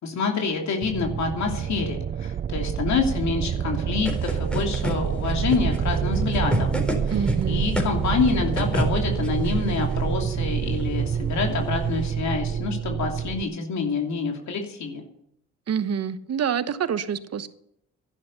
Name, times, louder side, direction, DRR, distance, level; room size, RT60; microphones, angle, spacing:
voice 1, 0.0-6.8 7.0-15.0, left 5 dB, 65° left, 2 dB, 2.9 m, -27 dB
sound 1, 0.8-13.4, right 8 dB, 30° right, 0.4 m, -27 dB
sound 2, 4.0-12.1, equal, 5° left, 4.3 m, -32 dB
voice 2, 7.1-7.7 15.7-17.5, right 7 dB, 55° right, 12 dB, 1.2 m, -27 dB
11.5 x 11.0 x 6.9 m, 0.74 s
supercardioid pair, 70°, 30 cm